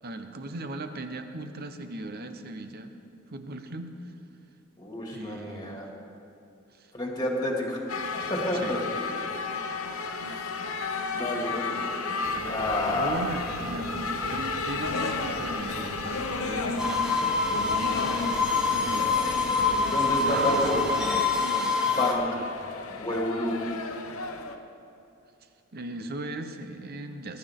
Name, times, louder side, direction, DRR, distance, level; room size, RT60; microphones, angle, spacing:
voice 1, 0.0-2.9 3.3-4.1 5.1-5.9 6.7-6.9 8.6-8.8 12.9-19.2 20.1-20.8 25.7-27.4, right 1 dB, 50° right, 7 dB, 0.9 m, -37 dB
voice 2, 4.8-5.9 6.9-7.8 8.3-8.8 9.2-9.5 11.1-13.3 19.9-20.8 21.8-22.2 22.9-23.6, left 1 dB, 20° left, -1 dB, 2.4 m, -30 dB
sound 1, 7.9-24.6, left 4 dB, 90° left, 0.9 m, -34 dB
sound 2, 12.2-21.1, right 2 dB, 85° right, 1.3 m, -41 dB
sound 3, 16.8-22.1, left 4 dB, 5° right, 1.1 m, -25 dB
20.5 x 12.0 x 3.7 m, 2.7 s
head